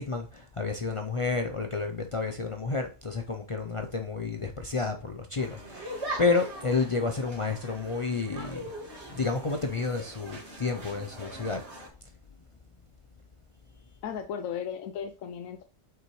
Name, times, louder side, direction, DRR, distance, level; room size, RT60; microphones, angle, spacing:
voice 1, 0.0-8.7 9.1-11.6, left 4 dB, 45° left, 0.4 m, -30 dB
sound 1, 5.4-11.9, right 1 dB, 60° right, 2.2 m, -41 dB
voice 2, 14.0-15.6, left 8 dB, 85° left, 1.0 m, -35 dB
7.2 x 5.6 x 3.1 m
omnidirectional pair, 1.3 m